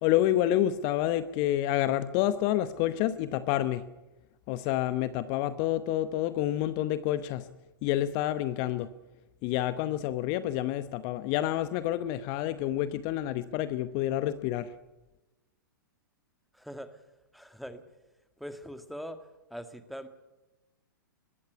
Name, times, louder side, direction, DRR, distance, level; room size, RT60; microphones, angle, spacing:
voice 1, 0.0-3.8 4.5-7.5 7.8-8.9 9.4-14.7, left 13 dB, 40° left, 14 dB, 0.9 m, -28 dB
voice 2, 16.5-17.0 17.3-17.8 18.4-20.1, equal, ahead, 10 dB, 1.7 m, -42 dB
21.0 x 15.0 x 9.6 m, 1.1 s
figure-of-eight pair, 110°, 11 cm